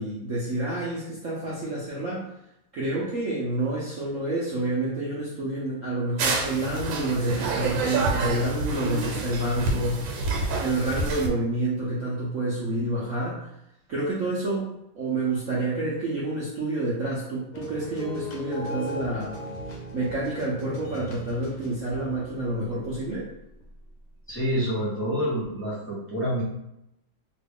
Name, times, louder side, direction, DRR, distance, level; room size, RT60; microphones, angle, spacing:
voice 1, 0.0-2.3 2.7-10.2 10.6-13.4 13.9-19.4 19.9-23.3, right 2 dB, 70° right, -6 dB, 0.7 m, -28 dB
sound 1, 6.2-11.3, right 3 dB, 90° right, 1.5 m, -28 dB
sound 2, 17.5-23.7 24.3-24.4, equal, 70° left, 0.8 m, -38 dB
voice 2, 24.3-26.4, equal, 15° left, -8 dB, 0.5 m, -27 dB
3.0 x 2.5 x 3.6 m, 0.83 s
omnidirectional pair, 2.2 m